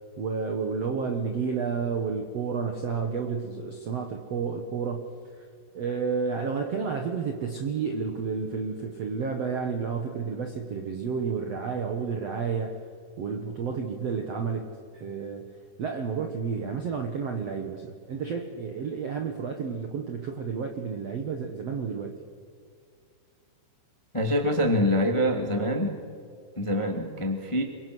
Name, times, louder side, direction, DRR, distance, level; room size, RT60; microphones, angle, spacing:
voice 1, 0.2-5.1 5.7-12.8 13.2-14.7 14.9-15.5 15.8-22.2, right 5 dB, 65° right, 4 dB, 1.5 m, -31 dB
voice 2, 24.1-26.0 26.6-27.6, equal, 25° left, 3 dB, 0.7 m, -25 dB
28.0 x 23.5 x 6.3 m, 2.2 s
omnidirectional pair, 5.2 m